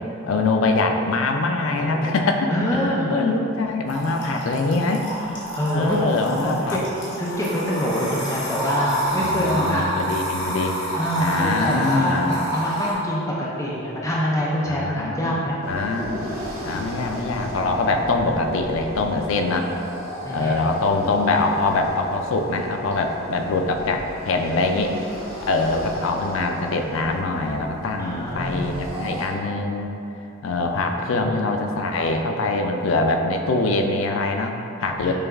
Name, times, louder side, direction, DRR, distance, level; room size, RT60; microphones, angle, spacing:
voice 1, 0.0-5.1 5.7-6.8 9.2-10.8 11.2-12.3 14.7-15.4 15.7-16.3 16.6-19.7 20.3-24.9 25.4-29.9 30.4-35.1, left 3 dB, 75° left, 4 dB, 0.4 m, -23 dB
voice 2, 2.5-3.2 5.6-6.8 7.1-9.9 10.9-15.6 20.2-20.6 28.0-28.8 30.9-31.4 35.0-35.1, equal, 15° left, -5 dB, 0.4 m, -25 dB
sound 1, 3.9-12.9, right 1 dB, 55° left, 1.1 m, -29 dB
sound 2, 15.6-29.3, equal, 85° right, 1.2 m, -35 dB
6.5 x 2.3 x 3.4 m, 2.8 s
head